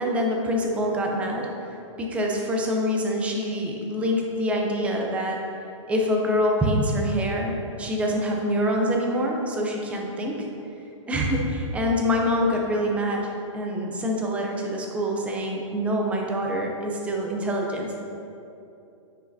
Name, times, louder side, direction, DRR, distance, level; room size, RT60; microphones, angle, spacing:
voice 1, 0.0-1.5 2.0-5.4 5.9-10.3 11.1-13.3 13.5-18.0, equal, 10° right, 0 dB, 0.5 m, -25 dB
9.3 x 4.7 x 2.7 m, 2.8 s
hypercardioid pair, 155°, 17 cm